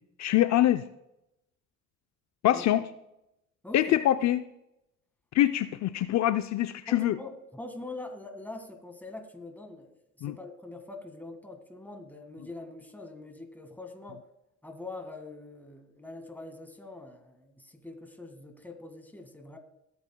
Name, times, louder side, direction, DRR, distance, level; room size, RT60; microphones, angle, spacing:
voice 1, 0.2-0.9 2.4-2.8 3.7-4.5 5.3-7.2 10.2-10.4, left 13 dB, 65° left, 10 dB, 0.5 m, -24 dB
voice 2, 3.6-4.0 6.9-14.2 14.6-19.6, left 2 dB, 5° left, 6 dB, 1.8 m, -43 dB
20.0 x 8.7 x 2.2 m, 0.86 s
cardioid pair, 90°, 30 cm